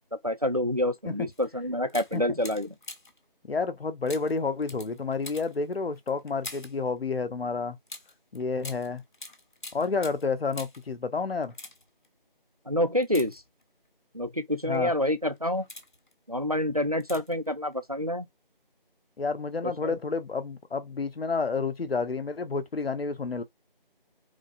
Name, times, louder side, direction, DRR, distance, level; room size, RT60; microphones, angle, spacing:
voice 1, 0.2-2.7 12.7-13.4 14.1-15.7 16.3-18.3 19.6-20.0, left 1 dB, 40° right, 0.4 m, -27 dB
sound 1, 1.3-1.5 1.9-3.3 4.1-6.8 7.9-10.9 11.4-12.1 13.0-13.9 14.5-14.8 15.3-16.1 17.0-17.5 17.7-17.8, left 2 dB, 55° left, 0.8 m, -45 dB
voice 2, 3.5-7.8 8.3-9.0 9.7-11.5 14.7-14.9 19.2-23.4, left 4 dB, 85° left, 0.8 m, -30 dB
4.8 x 2.0 x 2.4 m
figure-of-eight pair, 170°, 29 cm